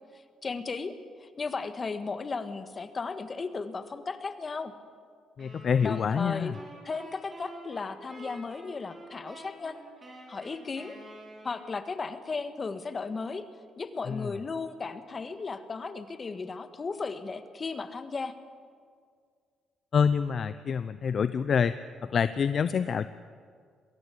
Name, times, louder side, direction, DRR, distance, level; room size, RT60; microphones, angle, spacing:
voice 1, 0.4-4.7 5.8-6.5 6.8-9.8 10.3-11.0 11.4-13.4 13.8-18.3, left 4 dB, 35° left, 10 dB, 1.5 m, -35 dB
voice 2, 5.4-6.6 14.1-14.3 19.9-23.1, left 6 dB, 50° left, 13 dB, 0.6 m, -27 dB
sound 1, 5.4-12.0, right 1 dB, 35° right, 6.2 m, -48 dB
22.5 x 16.5 x 8.4 m, 2.1 s
cardioid pair, 90°, 0 cm